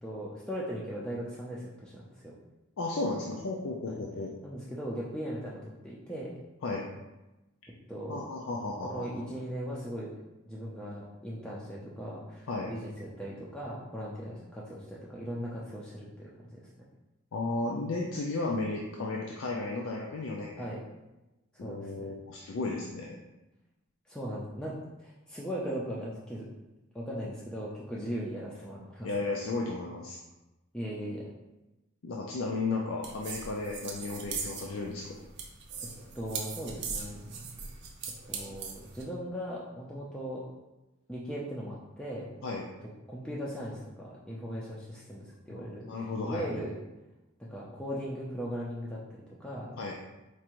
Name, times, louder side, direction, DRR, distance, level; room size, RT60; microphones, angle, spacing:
voice 1, 0.0-2.3 3.9-4.0 4.4-6.3 7.9-8.2 8.9-10.1 10.5-16.7 20.6-20.8 21.5-22.1 24.1-24.7 25.0-26.5 26.9-29.1 30.7-31.3 36.1-37.2 38.3-40.5 41.1-42.3 43.1-46.7 47.4-49.0 49.4-49.7, equal, 5° left, -6 dB, 0.4 m, -38 dB
voice 2, 2.8-4.3 6.6-6.9 8.1-9.3 12.5-12.7 17.3-20.7 21.6-23.2 29.0-30.2 32.0-35.1 42.4-42.6 45.5-46.7 49.8-49.9, left 3 dB, 65° left, -2 dB, 0.4 m, -34 dB
sound 1, 33.0-39.0, right 5 dB, 55° right, 0.6 m, -40 dB
4.5 x 2.5 x 2.9 m, 1.0 s
head